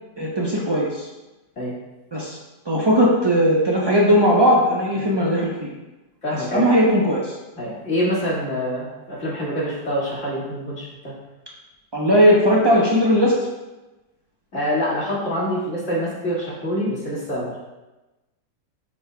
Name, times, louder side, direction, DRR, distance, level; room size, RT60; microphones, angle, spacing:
voice 1, 0.2-1.1 2.1-2.4 2.7-5.7 6.5-7.3 11.9-13.4, equal, 40° right, -4 dB, 0.3 m, -18 dB
voice 2, 6.2-6.7 7.6-11.1 14.5-17.6, equal, 45° left, -7 dB, 2.4 m, -26 dB
11.0 x 5.4 x 2.3 m, 1.1 s
omnidirectional pair, 1.8 m